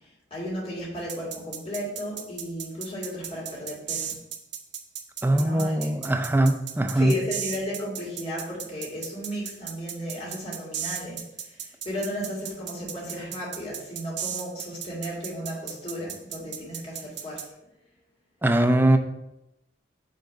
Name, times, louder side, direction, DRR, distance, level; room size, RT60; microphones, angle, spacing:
voice 1, 0.3-4.2 5.3-6.0 6.9-17.5, equal, 35° left, -6 dB, 2.6 m, -34 dB
sound 1, 1.1-17.5, right 8 dB, 80° right, 0.8 m, -35 dB
voice 2, 5.2-7.1 18.4-19.0, right 1 dB, 10° right, 5 dB, 0.5 m, -21 dB
6.6 x 3.8 x 5.6 m, 0.86 s
head